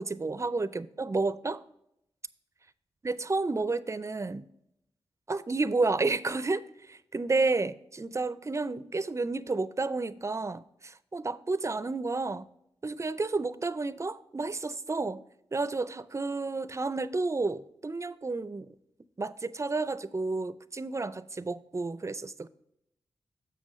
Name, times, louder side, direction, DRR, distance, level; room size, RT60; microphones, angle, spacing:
voice 1, 0.0-1.6 3.0-4.4 5.3-12.5 12.8-15.2 15.5-18.7 19.2-22.5, right 3 dB, 30° right, 0.4 m, -31 dB
7.3 x 6.9 x 3.1 m
cardioid pair, 50°, 10 cm